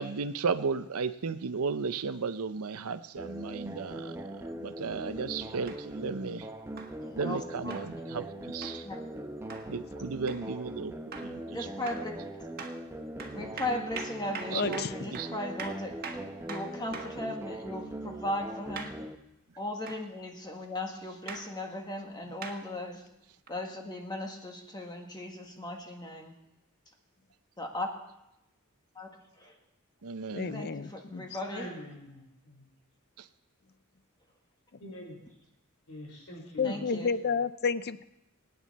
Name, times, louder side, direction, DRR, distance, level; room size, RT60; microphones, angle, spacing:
voice 1, 0.0-4.1 4.6-6.4 7.2-8.8 9.7-10.9 11.2-11.7 12.0-12.1 13.3-13.6 14.5-14.8 15.1-15.3 30.0-30.5, right 5 dB, 90° right, 12 dB, 0.7 m, -34 dB
sound 1, 3.2-19.2, right 1 dB, 10° right, 0.8 m, -41 dB
sound 2, 5.7-5.8 6.8-7.0 7.7-7.9 8.6-8.8 9.5-9.7 10.3-10.5 11.1-11.4 11.9-12.1 12.6-12.8 13.2-17.2 18.8-19.0 19.9-20.0 21.3-21.5 22.4-22.6 23.5-23.6, right 5 dB, 45° right, 1.6 m, -42 dB
voice 2, 7.0-7.8 8.8-9.0 11.5-12.5 13.3-15.9 16.5-18.9 19.6-23.0 23.5-26.3 27.6-27.9 28.9-29.1 29.4-29.6 30.5-31.7 36.6-37.1, left 1 dB, 20° left, 2 dB, 1.6 m, -37 dB
voice 3, 14.5-14.9 30.3-31.3 36.6-38.0, left 5 dB, 50° left, 15 dB, 0.5 m, -31 dB
voice 4, 31.5-32.7 34.8-35.2 35.9-36.9, left 1 dB, 85° left, -1 dB, 3.9 m, -44 dB
24.5 x 9.6 x 4.2 m, 0.89 s
head